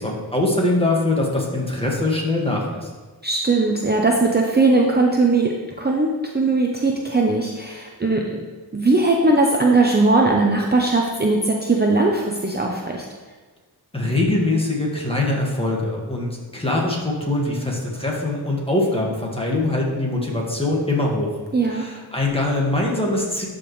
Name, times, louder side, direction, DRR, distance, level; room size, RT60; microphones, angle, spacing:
voice 1, 0.0-2.9 13.9-21.3 21.7-23.5, left 2 dB, 15° left, -2 dB, 1.8 m, -22 dB
voice 2, 3.2-8.4 8.7-13.0 21.5-21.8, right 3 dB, 25° right, 0 dB, 0.7 m, -19 dB
12.0 x 5.2 x 3.2 m, 1.4 s
wide cardioid pair, 80°, 43 cm